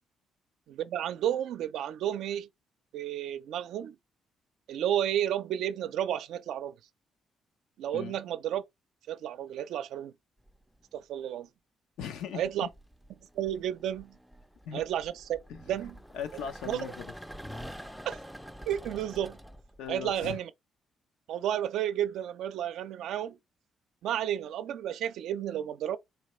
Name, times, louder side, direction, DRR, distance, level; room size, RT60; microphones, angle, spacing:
voice 1, 0.7-2.5 2.9-4.0 4.7-6.8 7.8-8.6 9.1-10.1 10.9-11.5 12.3-12.7 13.3-14.2 14.7-15.4 15.7-15.9 16.6-16.8 18.1-18.2 18.7-19.4 19.9-20.5 21.3-23.4 24.0-26.0, right 10 dB, 80° right, 0.5 m, -32 dB
sound 1, 10.5-10.9 12.0-20.3, equal, ahead, 0.4 m, -47 dB
voice 2, 12.0-12.7 14.6-14.8 15.5-15.6 16.1-17.1 19.8-20.4, left 8 dB, 85° left, 0.7 m, -39 dB
4.2 x 3.2 x 3.1 m
cardioid pair, 90°, 0 cm